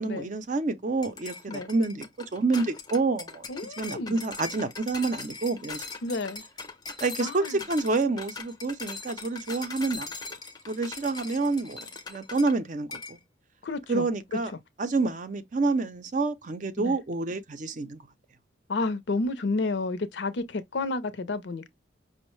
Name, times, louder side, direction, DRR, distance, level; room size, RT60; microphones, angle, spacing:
voice 1, 0.0-2.1 2.3-3.5 3.8-5.8 7.0-10.1 10.7-13.2 13.9-14.5 14.8-18.0, right 3 dB, 40° right, 0.5 m, -28 dB
sound 1, 1.0-12.6 12.9-13.2, left 4 dB, 20° left, 0.5 m, -40 dB
voice 2, 3.5-4.2 6.0-6.4 7.2-7.6 13.6-14.1 16.8-17.0 18.7-21.7, left 3 dB, 65° left, 0.5 m, -31 dB
5.2 x 2.0 x 3.1 m
head